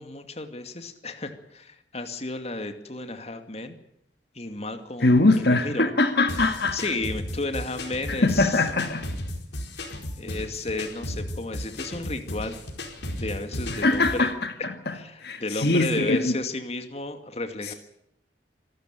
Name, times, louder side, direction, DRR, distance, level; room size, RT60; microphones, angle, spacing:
voice 1, 0.0-3.8 4.3-5.9 6.7-8.7 10.2-12.6 13.2-14.3 14.9-17.7, left 2 dB, 35° left, 2.4 m, -33 dB
voice 2, 5.0-6.8 8.1-9.1 13.7-14.9 15.2-16.3, left 2 dB, 65° left, 1.7 m, -22 dB
sound 1, 6.3-14.2, left 1 dB, 85° left, 4.8 m, -35 dB
26.0 x 13.0 x 9.2 m
head